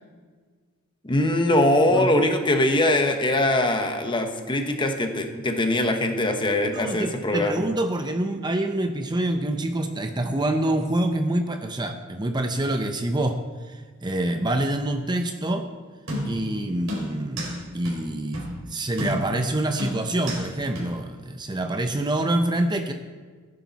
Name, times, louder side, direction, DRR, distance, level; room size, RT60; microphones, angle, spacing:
voice 1, 1.0-7.6, left 1 dB, 25° left, 5 dB, 1.1 m, -22 dB
voice 2, 6.6-15.7 16.2-17.5 17.7-22.9, right 1 dB, 20° right, 6 dB, 0.7 m, -26 dB
sound 1, 16.1-16.5 16.9-17.6 17.9-18.0 18.3-18.5 19.0-19.4 19.8-20.5 20.8-20.9, equal, 75° right, 4.7 m, -31 dB
15.0 x 10.5 x 4.1 m, 1.5 s
head